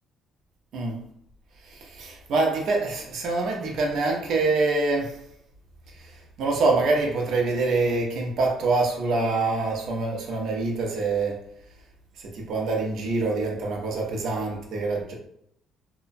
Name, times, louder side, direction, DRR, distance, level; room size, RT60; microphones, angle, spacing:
voice 1, 1.6-5.2 5.9-11.4 12.2-15.1, right 3 dB, 65° right, 0.7 m, -25 dB
2.8 x 2.2 x 2.5 m
cardioid pair, 125°, 0 cm